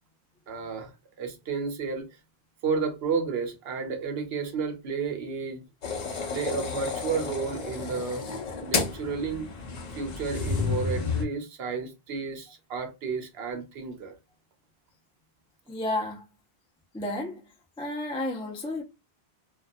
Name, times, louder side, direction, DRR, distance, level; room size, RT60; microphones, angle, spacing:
voice 1, 0.5-0.9 1.2-2.1 2.6-5.6 6.3-8.2 8.6-9.4 9.9-14.1, right 5 dB, 80° right, 0.9 m, -32 dB
sound 1, 5.8-11.2, left 4 dB, 50° left, 0.6 m, -31 dB
voice 2, 15.7-16.2 16.9-17.4 17.8-18.8, left 1 dB, 10° left, 0.3 m, -32 dB
2.3 x 2.3 x 2.6 m
omnidirectional pair, 1.1 m